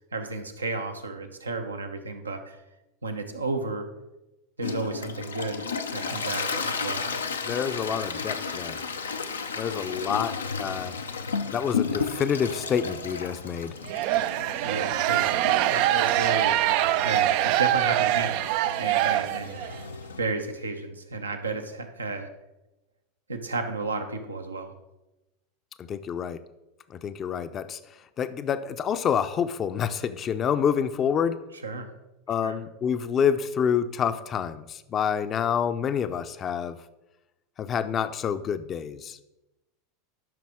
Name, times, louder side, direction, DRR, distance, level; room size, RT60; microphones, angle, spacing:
voice 1, 0.1-2.6 3.0-3.9 4.6-5.7 5.9-7.1 14.5-16.5 17.0-18.4 18.8-19.6 20.2-22.3 23.3-24.7 31.6-31.9 32.4-32.6, right 3 dB, 90° right, 6 dB, 0.9 m, -32 dB
Toilet flush, 4.6-20.2, left 5 dB, 85° left, 0.6 m, -34 dB
voice 2, 7.4-8.8 9.6-11.0 11.5-13.7 25.8-26.4 26.9-27.8 28.2-31.4 32.3-36.8 37.6-39.2, left 7 dB, 35° left, 11 dB, 0.6 m, -27 dB
sound 1, 13.9-19.8, right 14 dB, 55° right, 0.3 m, -24 dB
12.5 x 5.8 x 3.7 m, 0.98 s
figure-of-eight pair, 85°, 0 cm